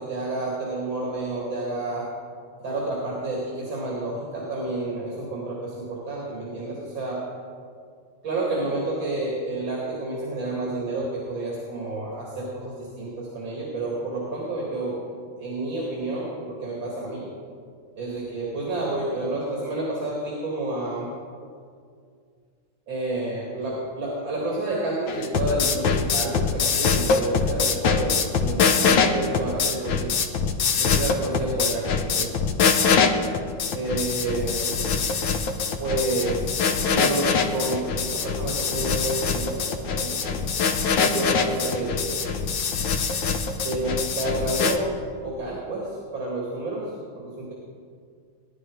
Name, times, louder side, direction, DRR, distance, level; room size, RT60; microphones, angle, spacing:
voice 1, 0.0-2.1 2.6-7.2 8.2-15.0 15.4-17.3 18.0-21.1 22.9-30.2 30.8-32.4 33.7-35.1 35.8-40.5 41.0-42.4 43.6-44.9 45.2-47.5, right 2 dB, 85° right, -4 dB, 3.2 m, -30 dB
sound 1, 25.1-44.8, left 5 dB, 90° left, 1.7 m, -24 dB
20.0 x 11.0 x 4.8 m, 2.2 s
omnidirectional pair, 2.1 m